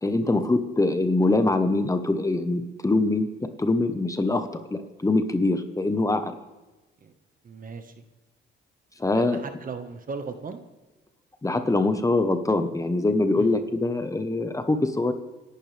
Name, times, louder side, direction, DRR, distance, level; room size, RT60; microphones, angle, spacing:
voice 1, 0.0-3.3 3.6-6.4 9.0-9.4 11.4-15.1, left 2 dB, 15° left, 8 dB, 1.2 m, -23 dB
voice 2, 7.4-8.0 9.1-10.6 13.4-13.6, right 4 dB, 45° right, 7 dB, 1.6 m, -37 dB
27.0 x 11.5 x 3.5 m, 1.1 s
cardioid pair, 90°, 20 cm